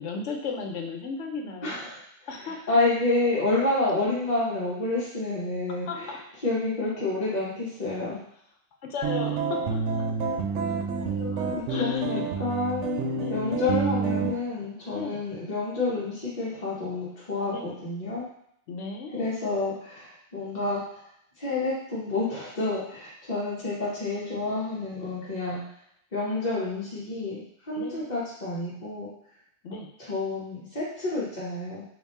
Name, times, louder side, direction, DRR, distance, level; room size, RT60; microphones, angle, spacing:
voice 1, 0.0-1.8 2.3-2.8 5.9-6.2 8.9-9.8 10.7-10.8 11.1-12.3 13.1-13.4 14.9-15.2 17.5-17.7 18.7-19.3 27.7-28.2 29.6-29.9, left 4 dB, 90° left, 3 dB, 1.0 m, -35 dB
voice 2, 1.6-2.0 2.3-6.2 6.4-8.2 11.5-13.0 13.3-18.3 19.1-21.0 21.4-25.6 26.1-29.1 30.0-31.8, left 2 dB, 40° left, -8 dB, 1.0 m, -29 dB
sound 1, 9.0-14.4, right 4 dB, 90° right, 0.9 m, -28 dB
3.5 x 2.6 x 4.1 m, 0.70 s
omnidirectional pair, 1.2 m